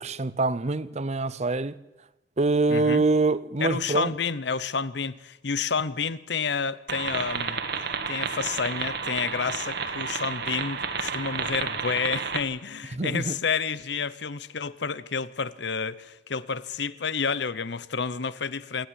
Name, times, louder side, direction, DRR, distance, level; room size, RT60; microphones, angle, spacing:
voice 1, 0.0-1.7 2.4-4.1 13.0-13.4, right 3 dB, 35° right, 0.6 m, -25 dB
voice 2, 2.7-3.0 3.6-7.6 8.1-18.9, left 5 dB, 65° left, 0.8 m, -30 dB
sound 1, 6.9-12.4, right 6 dB, 60° right, 1.6 m, -31 dB
27.0 x 10.5 x 10.0 m
head